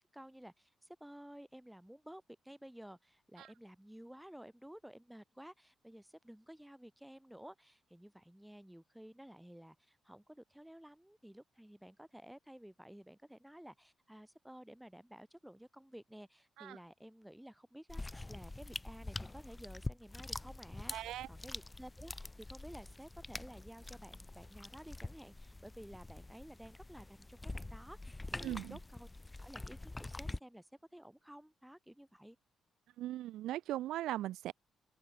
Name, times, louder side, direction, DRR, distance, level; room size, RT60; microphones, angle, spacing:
voice 1, 0.0-29.1 29.4-32.4, equal, 5° right, 2.1 m, -54 dB
sound 1, 17.9-30.4, left 2 dB, 15° left, 0.3 m, -46 dB
voice 2, 20.9-21.3 28.4-28.8 33.0-34.5, right 14 dB, 90° right, 0.6 m, -39 dB
open air
cardioid pair, 100°, 0 cm